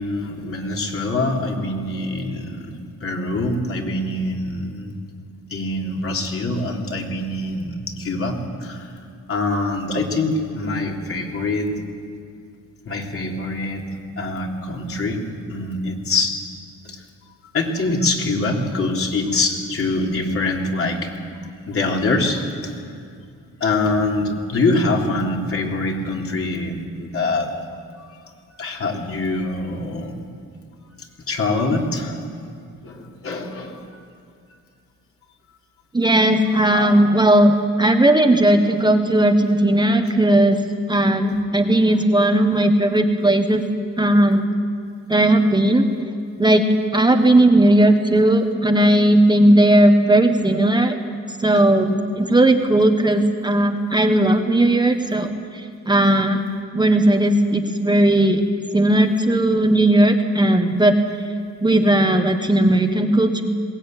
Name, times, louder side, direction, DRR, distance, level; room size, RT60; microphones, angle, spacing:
voice 1, 0.0-5.0 5.5-8.9 9.3-11.7 12.9-13.9 14.2-15.2 15.5-16.4 16.9-17.0 17.5-21.1 21.7-22.8 23.6-27.5 28.0-28.1 28.6-30.2 31.3-32.2 32.8-34.0 36.5-36.9, left 2 dB, 45° left, 0 dB, 3.6 m, -24 dB
voice 2, 35.9-40.6 40.9-43.6 44.0-44.5 45.1-45.9 46.4-46.7 46.9-51.0 51.4-56.4 56.7-58.4 58.7-61.0 61.6-63.4, right 1 dB, 15° right, 5 dB, 1.4 m, -16 dB
21.5 x 17.5 x 9.2 m, 2.3 s
cardioid pair, 90°, 30 cm